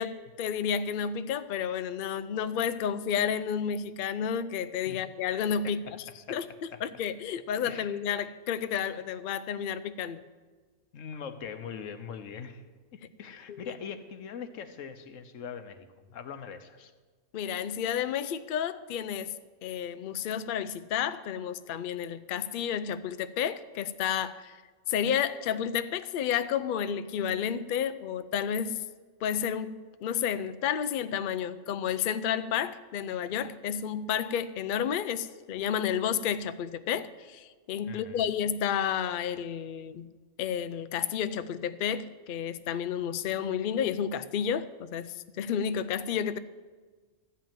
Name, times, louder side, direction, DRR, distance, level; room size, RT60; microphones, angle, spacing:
voice 1, 0.0-6.0 6.3-6.5 6.8-10.2 13.5-13.7 17.3-19.3 19.6-24.6 24.9-28.8 29.2-40.1 40.4-46.4, left 8 dB, 60° left, 13 dB, 0.6 m, -31 dB
voice 2, 5.6-6.4 6.7-6.8 7.7-8.0 10.9-12.6 13.2-16.9 37.9-38.4, left 7 dB, 85° left, 9 dB, 1.2 m, -42 dB
13.0 x 5.7 x 8.9 m, 1.4 s
omnidirectional pair, 1.3 m